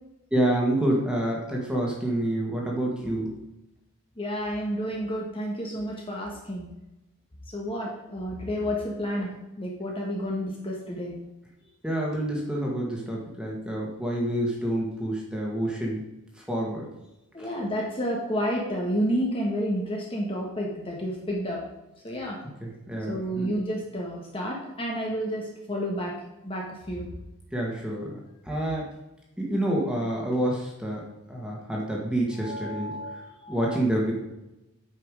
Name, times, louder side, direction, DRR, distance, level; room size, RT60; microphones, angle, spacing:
voice 1, 0.3-3.3 11.8-16.0 16.4-16.9 17.4-17.5 22.6-23.5 27.5-28.2 28.5-28.9 29.4-31.0 31.3-32.9 33.5-34.1, right 1 dB, 5° right, -3 dB, 1.8 m, -28 dB
voice 2, 4.2-6.7 7.5-9.3 9.6-11.1 17.3-21.6 22.0-22.4 23.1-26.1 26.4-27.1 32.4-33.8, equal, 25° left, -2 dB, 1.4 m, -30 dB
8.8 x 5.9 x 4.9 m, 0.94 s
head